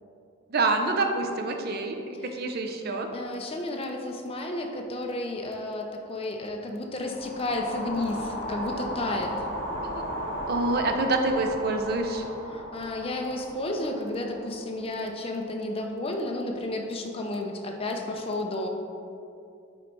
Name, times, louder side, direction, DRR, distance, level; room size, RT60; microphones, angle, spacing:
voice 1, 0.5-3.1 9.8-10.2 10.5-12.3, right 2 dB, 50° right, 4 dB, 0.5 m, -27 dB
voice 2, 3.1-9.3 12.5-18.7, left 2 dB, 25° left, 2 dB, 0.5 m, -32 dB
sound 1, 7.0-15.2, equal, 50° left, 1.4 m, -35 dB
5.2 x 4.0 x 4.5 m, 2.5 s
head